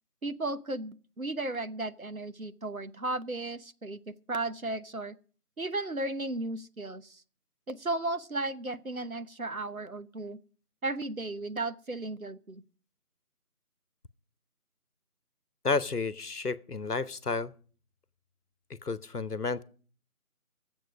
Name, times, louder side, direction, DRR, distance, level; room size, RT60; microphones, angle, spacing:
voice 1, 0.2-5.2 5.6-7.2 7.7-10.4 10.8-12.6, right 2 dB, 65° right, 12 dB, 1.0 m, -35 dB
voice 2, 15.6-17.5 18.8-19.6, left 4 dB, 80° left, 18 dB, 1.1 m, -31 dB
18.0 x 7.7 x 6.1 m, 0.43 s
figure-of-eight pair, 180°, 45 cm